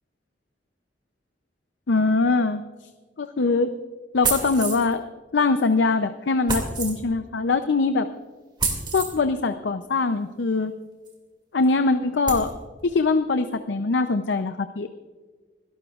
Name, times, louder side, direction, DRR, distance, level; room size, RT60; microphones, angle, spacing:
voice 1, 1.9-2.6 3.2-3.8 4.1-5.0 5.3-8.1 8.9-10.7 11.5-12.5 12.8-14.9, left 3 dB, 80° left, 9 dB, 0.6 m, -22 dB
sound 1, 4.2-4.9 6.5-7.0 8.6-9.1 11.1-11.2 11.6-11.7 12.3-12.5, right 4 dB, 25° right, 2.4 m, -27 dB
27.5 x 12.0 x 2.4 m, 1.4 s
head